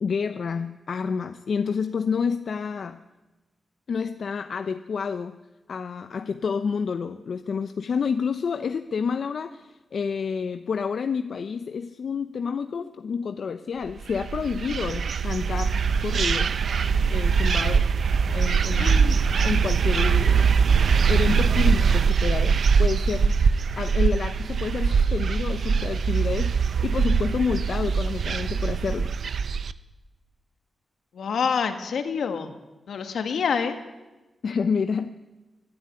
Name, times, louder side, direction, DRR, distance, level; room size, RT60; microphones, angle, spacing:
voice 1, 0.0-3.0 3.9-5.4 5.7-15.8 16.0-16.6 17.1-17.9 18.3-19.0 19.4-20.5 21.1-23.4 23.8-29.1 34.4-35.1, left 6 dB, 60° left, 9 dB, 0.8 m, -29 dB
sound 1, 14.0-29.7, right 6 dB, 65° right, 0.7 m, -22 dB
voice 2, 18.8-19.2 31.1-32.5 32.9-33.8, left 6 dB, 80° left, 7 dB, 2.1 m, -27 dB
23.5 x 11.5 x 9.9 m, 1.1 s
wide cardioid pair, 120°, 0 cm